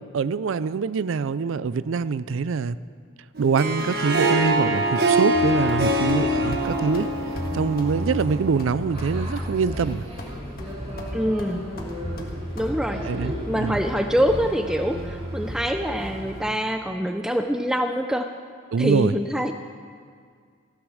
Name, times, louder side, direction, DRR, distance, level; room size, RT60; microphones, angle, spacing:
voice 1, 0.1-2.8 3.4-7.1 7.5-10.0 13.1-13.8 18.7-19.1, right 5 dB, 65° right, 17 dB, 0.4 m, -24 dB
Harp, 3.4-8.6, right 1 dB, 50° right, 1.4 m, -24 dB
sound 1, 5.3-16.4, equal, 30° right, 2.3 m, -33 dB
sound 2, 5.7-6.2 6.5-6.7 6.9-7.1 7.4-7.5 7.8-7.9 8.2-9.5 9.8-10.3 10.6-11.1 11.4-12.7, left 1 dB, 45° left, 1.6 m, -39 dB
voice 2, 11.1-11.7 12.5-18.3 18.8-19.5, equal, 5° right, 6 dB, 0.4 m, -25 dB
15.0 x 9.6 x 6.4 m, 2.1 s
head